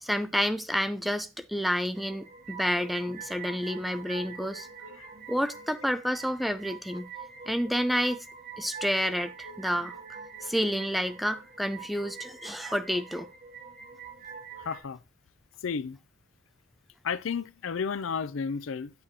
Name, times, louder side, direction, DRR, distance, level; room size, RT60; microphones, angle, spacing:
voice 1, 0.0-4.7 5.3-7.1 7.5-8.2 8.6-9.9 10.4-13.3, equal, ahead, 0.3 m, -29 dB
sound 1, 1.9-14.8, right 5 dB, 40° right, 1.2 m, -44 dB
voice 2, 14.7-15.0 15.6-16.0 17.0-18.9, left 6 dB, 70° left, 0.5 m, -32 dB
8.8 x 7.6 x 2.8 m
head